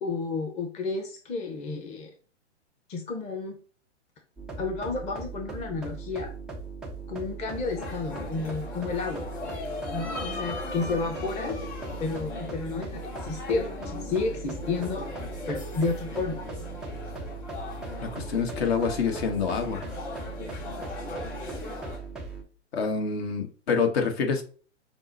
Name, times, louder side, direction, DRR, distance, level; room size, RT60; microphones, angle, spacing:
voice 1, 0.0-2.1 2.9-3.6 4.6-6.3 7.1-9.3 9.9-11.6 12.0-15.1 15.5-16.4, left 3 dB, 20° left, 3 dB, 0.8 m, -31 dB
sound 1, 4.4-22.4, right 3 dB, ahead, 0.3 m, -39 dB
sound 2, 7.5-22.0, left 3 dB, 75° left, 2.2 m, -39 dB
voice 2, 18.0-19.9 22.7-24.4, left 5 dB, 60° left, 5 dB, 1.3 m, -27 dB
6.0 x 2.1 x 3.9 m, 0.40 s
hypercardioid pair, 120°, 36 cm